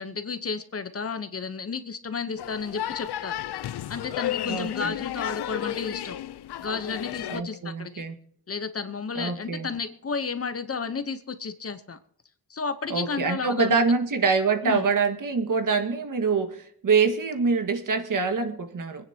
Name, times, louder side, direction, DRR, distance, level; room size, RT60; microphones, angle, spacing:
voice 1, 0.0-3.3 3.9-6.2 6.6-8.0 8.5-12.0 12.5-13.8 14.6-14.8, left 5 dB, 35° left, 10 dB, 0.9 m, -32 dB
sound 1, 2.4-7.4, left 12 dB, 90° left, 0.6 m, -33 dB
voice 2, 4.5-4.9 7.3-8.1 9.2-9.7 12.9-19.1, right 5 dB, 55° right, 6 dB, 1.8 m, -25 dB
25.0 x 9.8 x 2.9 m, 0.68 s
wide cardioid pair, 170°, 38 cm